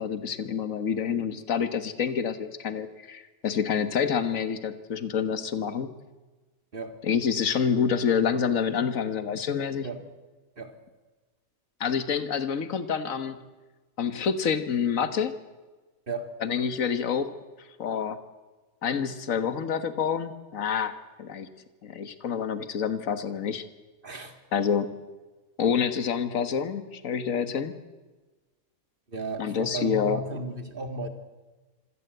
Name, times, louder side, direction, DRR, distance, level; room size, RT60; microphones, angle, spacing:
voice 1, 0.0-5.9 7.0-9.9 11.8-13.4 14.0-15.4 16.4-18.2 18.8-21.5 21.8-23.6 24.5-25.0 25.6-27.8 29.4-30.2, left 7 dB, 65° left, 11 dB, 1.7 m, -27 dB
voice 2, 24.0-24.4 29.1-31.1, right 2 dB, 35° right, 8 dB, 2.3 m, -34 dB
25.5 x 17.0 x 8.0 m, 1.2 s
omnidirectional pair, 1.5 m